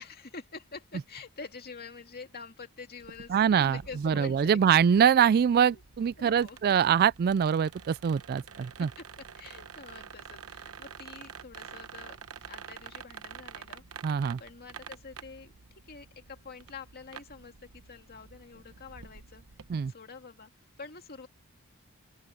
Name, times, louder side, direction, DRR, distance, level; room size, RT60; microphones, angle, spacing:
voice 1, 0.0-4.7 5.7-5.8 6.2-6.6 8.8-12.2 12.5-13.8 14.4-15.5 15.9-19.4 19.9-20.5 20.8-21.3, left 4 dB, 45° left, 2.3 m, -46 dB
sound 1, 3.0-19.9, right 6 dB, 70° right, 0.9 m, -48 dB
voice 2, 3.3-8.9 14.0-14.4 19.7-19.9, right 8 dB, 45° right, 0.3 m, -24 dB
open air
head